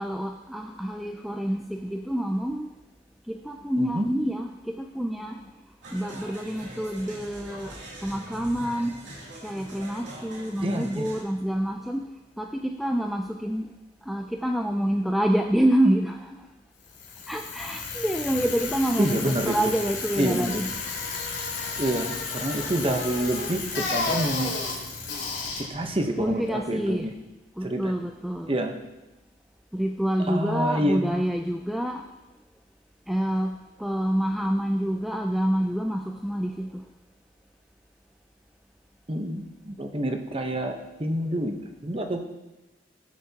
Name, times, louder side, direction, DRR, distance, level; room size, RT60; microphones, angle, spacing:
voice 1, 0.0-2.7 3.3-5.4 5.9-8.9 9.4-12.1 12.4-13.7 14.1-16.4 17.3-20.7 26.2-27.1 27.6-28.6 29.7-32.0 33.1-36.8, right 1 dB, ahead, 3 dB, 0.3 m, -27 dB
sound 1, 5.8-11.2, right 1 dB, 80° right, 2.8 m, -43 dB
voice 2, 10.6-11.1 19.0-19.6 20.2-20.6 21.8-24.6 25.6-27.1 27.6-27.9 28.5-28.8 30.3-31.2 39.1-42.2, right 1 dB, 30° right, 4 dB, 0.9 m, -27 dB
Bicycle, 16.8-26.9, left 4 dB, 75° left, 3.0 m, -33 dB
16.5 x 7.4 x 2.9 m, 1.0 s
head